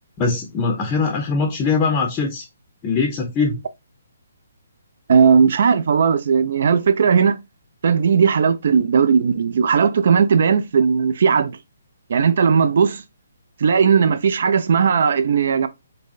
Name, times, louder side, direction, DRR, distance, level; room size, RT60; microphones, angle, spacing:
voice 1, 0.2-2.5 2.8-3.6, left 4 dB, 20° left, 0.5 m, -21 dB
voice 2, 5.1-7.4 7.8-11.5 12.1-13.0 13.6-15.7, right 6 dB, 60° right, 0.4 m, -17 dB
3.4 x 2.0 x 2.4 m
hypercardioid pair, 145°, 0 cm